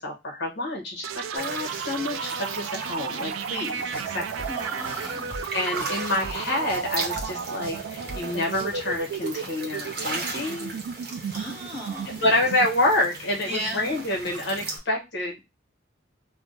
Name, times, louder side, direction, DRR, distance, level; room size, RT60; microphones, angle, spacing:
voice 1, 0.0-4.2 4.9-5.1 5.5-10.7 12.2-15.4, left 1 dB, 55° left, -1 dB, 1.0 m, -28 dB
sound 1, 1.0-14.6, right 6 dB, 80° right, 0.3 m, -34 dB
sound 2, 1.3-14.8, right 3 dB, 50° right, 0.9 m, -38 dB
sound 3, 3.8-9.0, right 1 dB, 10° left, 1.7 m, -42 dB
voice 2, 4.4-5.3 11.3-12.2 13.5-14.0, right 1 dB, 10° right, -9 dB, 1.0 m, -35 dB
3.3 x 2.1 x 3.7 m, 0.24 s
head